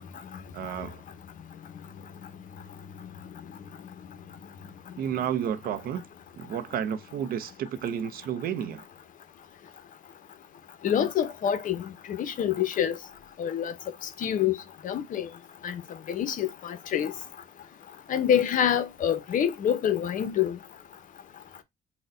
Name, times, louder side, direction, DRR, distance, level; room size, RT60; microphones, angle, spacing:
voice 1, 0.5-1.0 5.0-6.0 6.4-8.8, right 9 dB, 60° right, 0.6 m, -31 dB
voice 2, 10.8-11.9 12.2-12.9 13.4-13.7 14.2-14.6 14.8-15.3 15.6-15.8 16.1-17.1 18.1-20.6, left 9 dB, 50° left, 0.7 m, -26 dB
4.1 x 2.2 x 3.7 m
cardioid pair, 110°, 17 cm